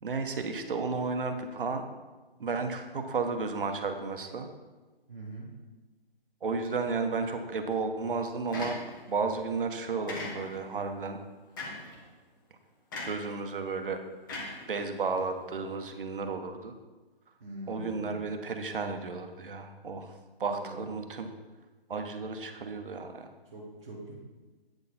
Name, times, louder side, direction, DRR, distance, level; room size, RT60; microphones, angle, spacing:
voice 1, 0.0-1.8 2.4-4.5 6.4-8.8 9.1-11.2 13.0-14.0 14.6-16.7 17.7-20.1 20.4-21.3 21.9-23.3, right 4 dB, 60° right, 6 dB, 1.1 m, -33 dB
voice 2, 5.1-5.5 17.4-18.1 20.4-20.9 23.4-24.1, right 2 dB, 5° right, -10 dB, 0.5 m, -43 dB
sound 1, 8.5-9.2 10.1-10.7 11.6-12.0 12.9-13.3 14.3-15.2, left 2 dB, 20° left, 1.1 m, -39 dB
9.0 x 6.5 x 4.2 m, 1.2 s
hypercardioid pair, 165°, 30 cm